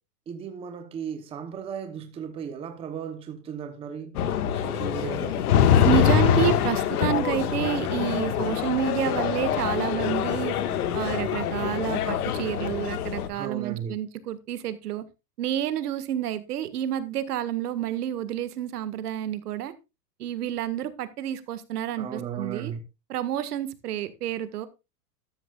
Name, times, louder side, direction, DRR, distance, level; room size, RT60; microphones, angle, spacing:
voice 1, 0.3-5.5 13.3-13.9 22.0-22.8, right 7 dB, 10° right, 0.9 m, -36 dB
sound 1, 4.1-13.3, left 9 dB, 65° left, 1.8 m, -24 dB
voice 2, 5.8-10.6 10.9-15.0 15.4-19.7 20.2-22.7 23.1-24.7, right 11 dB, 70° right, 1.8 m, -29 dB
12.5 x 12.5 x 2.4 m
supercardioid pair, 160°, 48 cm